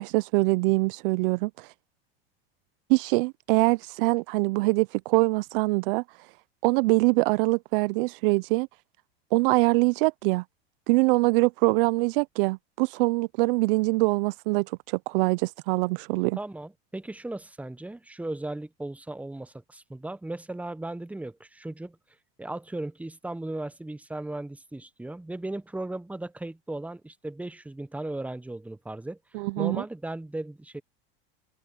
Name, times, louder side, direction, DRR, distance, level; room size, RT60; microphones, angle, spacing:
voice 1, 0.0-1.7 2.9-6.0 6.6-8.7 9.3-10.4 10.9-16.4 29.3-29.8, right 25 dB, 60° right, 0.6 m, -24 dB
voice 2, 16.4-22.0 22.4-29.2 29.6-30.8, right 2 dB, 5° right, 1.2 m, -36 dB
open air
hypercardioid pair, 100°, 30 cm